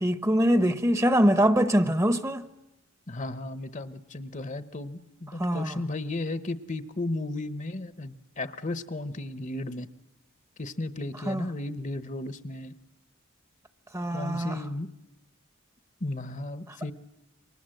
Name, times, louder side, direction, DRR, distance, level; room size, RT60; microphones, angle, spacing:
voice 1, 0.0-2.4 5.4-5.8 11.3-11.5 13.9-14.6 16.7-16.8, equal, 15° right, 0.9 m, -23 dB
voice 2, 3.1-9.9 10.6-12.7 14.1-14.9 16.0-16.9, left 2 dB, 35° left, 0.9 m, -34 dB
28.5 x 24.5 x 7.8 m
head